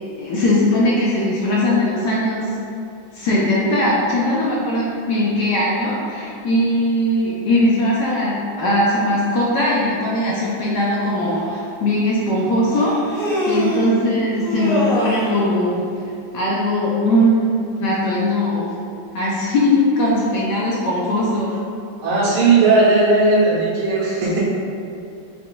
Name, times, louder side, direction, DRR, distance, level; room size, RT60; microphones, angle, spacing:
voice 1, 0.2-2.6 3.1-15.8 16.3-18.7 19.1-21.6, left 1 dB, 65° left, -6 dB, 1.1 m, -20 dB
Human voice, 11.4-11.5 12.7-13.9 14.4-15.4, equal, 10° left, 0.7 m, -23 dB
voice 2, 22.0-24.4, right 3 dB, 90° right, -7 dB, 2.0 m, -16 dB
5.6 x 2.3 x 3.9 m, 2.5 s
omnidirectional pair, 2.3 m